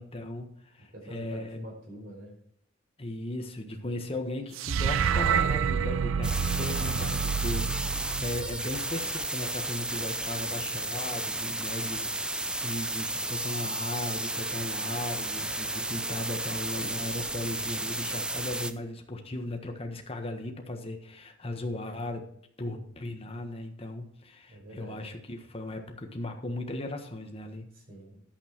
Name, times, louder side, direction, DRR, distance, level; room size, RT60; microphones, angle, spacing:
voice 1, 0.0-1.6 3.0-22.2 22.6-27.7, left 1 dB, 30° left, 4 dB, 1.5 m, -37 dB
voice 2, 0.9-2.3 24.5-25.0 27.7-28.3, right 1 dB, 50° right, -1 dB, 5.2 m, -45 dB
sound 1, 4.6-8.9, right 7 dB, 80° right, 0.4 m, -28 dB
sound 2, 6.2-18.7, right 2 dB, 5° right, 0.5 m, -33 dB
11.5 x 8.2 x 4.5 m, 0.69 s
head